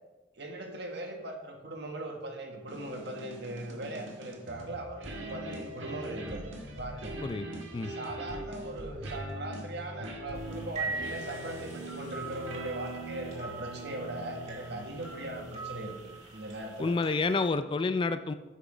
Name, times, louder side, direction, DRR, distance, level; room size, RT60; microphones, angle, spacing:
voice 1, 0.3-6.5 6.8-7.1 7.8-16.9, right 1 dB, 60° right, 2 dB, 1.4 m, -40 dB
sound 1, 2.7-16.2, right 1 dB, 85° right, 1.4 m, -42 dB
sound 2, 10.3-17.5, right 4 dB, 35° right, 2.0 m, -42 dB
voice 2, 16.8-18.3, left 3 dB, 25° left, 11 dB, 0.3 m, -29 dB
8.3 x 6.0 x 4.9 m, 1.1 s
head